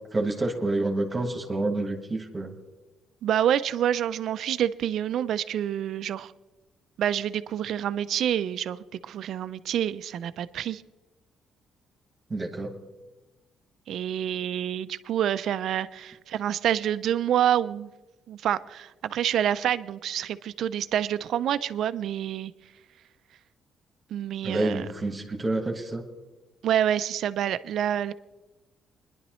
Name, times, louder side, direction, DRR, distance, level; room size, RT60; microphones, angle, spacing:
voice 1, 0.1-2.5 12.3-12.8 24.4-26.0, right 2 dB, 25° right, 4 dB, 1.6 m, -28 dB
voice 2, 3.2-6.3 7.0-10.8 13.9-17.9 18.3-22.5 24.1-24.9 26.6-28.1, right 10 dB, 75° right, 14 dB, 0.5 m, -27 dB
21.0 x 11.0 x 3.1 m, 1.1 s
cardioid pair, 90°, 0 cm